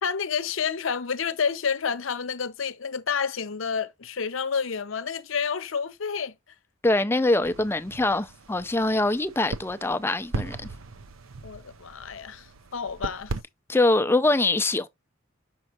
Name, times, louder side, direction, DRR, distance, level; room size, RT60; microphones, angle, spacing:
voice 1, 0.0-6.3 11.4-13.3, left 6 dB, 70° left, 0.7 m, -29 dB
voice 2, 6.8-10.7 13.7-14.9, left 2 dB, 10° left, 0.4 m, -23 dB
sound 1, 7.4-13.4, right 3 dB, 80° right, 0.7 m, -38 dB
6.2 x 5.3 x 2.8 m
head